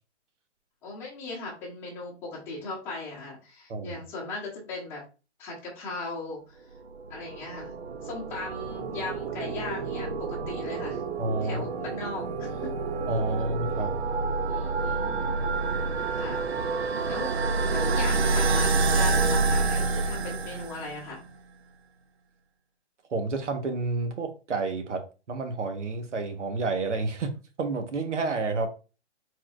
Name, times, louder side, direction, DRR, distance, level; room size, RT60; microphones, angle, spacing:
voice 1, 0.8-5.0 5.4-6.6 7.1-7.7 8.0-11.0 11.4-12.7 14.5-15.4 16.2-16.4 17.1-17.3 17.7-21.2, left 3 dB, 5° left, 0.9 m, -38 dB
voice 2, 3.7-4.0 11.2-11.7 13.1-13.9 23.1-27.3 27.6-28.7, right 3 dB, 85° right, 1.3 m, -30 dB
sound 1, 6.9-21.0, right 3 dB, 60° right, 0.7 m, -28 dB
4.5 x 4.2 x 2.4 m
hypercardioid pair, 165°, 35 cm